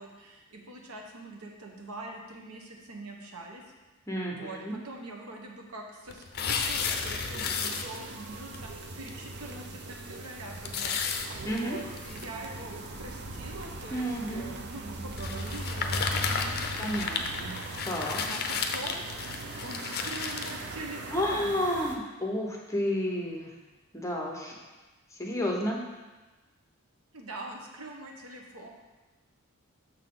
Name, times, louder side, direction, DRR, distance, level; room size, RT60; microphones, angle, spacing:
voice 1, 0.0-3.6 4.3-11.0 11.5-17.2 18.2-19.1 19.6-21.5 27.1-28.7, right 2 dB, 85° right, 1 dB, 1.1 m, -43 dB
voice 2, 4.1-4.8 11.4-11.8 13.9-14.6 16.8-18.2 21.1-23.5 23.9-24.6 25.1-25.9, equal, 15° left, -1 dB, 0.9 m, -31 dB
sound 1, 6.1-8.2 8.5-8.6 9.1-9.2 9.5-9.6 10.6-12.2 12.9-13.0 13.9-14.2 15.2-20.6, left 5 dB, 45° left, 0.6 m, -33 dB
sound 2, 6.4-22.0, right 2 dB, 50° right, 0.6 m, -40 dB
6.5 x 6.3 x 3.8 m, 1.2 s
head